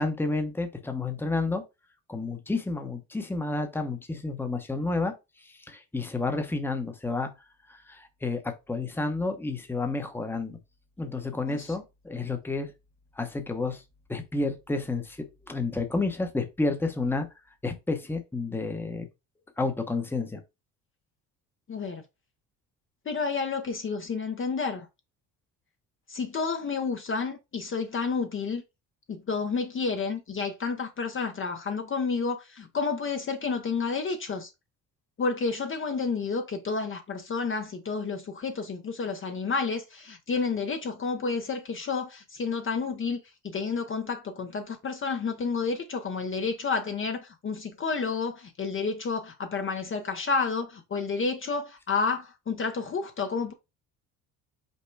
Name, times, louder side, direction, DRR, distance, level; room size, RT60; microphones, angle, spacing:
voice 1, 0.0-1.6 2.1-5.1 5.4-7.3 7.7-10.6 11.0-12.7 13.2-13.8 14.1-17.3 17.6-19.0 19.6-20.4, left 3 dB, 5° left, 0.8 m, -30 dB
voice 2, 21.7-22.0 23.1-24.9 26.1-28.6 29.1-34.5 35.2-53.5, left 4 dB, 35° left, 0.7 m, -30 dB
5.4 x 2.2 x 4.5 m
cardioid pair, 100°, 38 cm